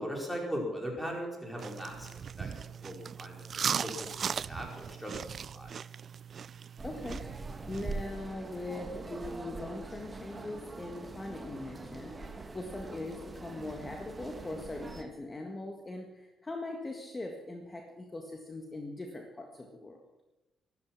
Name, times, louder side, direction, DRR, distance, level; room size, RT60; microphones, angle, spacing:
voice 1, 0.0-5.7, equal, ahead, -1 dB, 4.9 m, -39 dB
sound 1, 1.6-8.1, right 7 dB, 50° right, 0.4 m, -38 dB
voice 2, 6.8-12.2 12.5-20.0, left 2 dB, 25° left, 3 dB, 1.7 m, -41 dB
sound 2, 6.8-15.0, right 3 dB, 25° right, 1.5 m, -43 dB
14.0 x 13.0 x 6.0 m, 1.0 s
cardioid pair, 90°, 0 cm